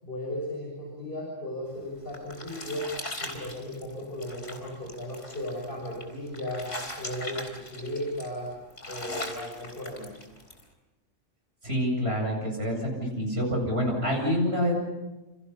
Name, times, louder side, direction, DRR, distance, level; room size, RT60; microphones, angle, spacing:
voice 1, 0.0-2.9 3.2-6.7 7.0-8.5 8.9-10.1, left 1 dB, 45° left, -2 dB, 6.6 m, -36 dB
sound 1, 1.7-10.6, left 2 dB, 70° left, 4.3 m, -40 dB
voice 2, 11.6-14.7, equal, 55° right, 1 dB, 8.4 m, -27 dB
29.5 x 28.5 x 5.7 m, 1.1 s
omnidirectional pair, 1.3 m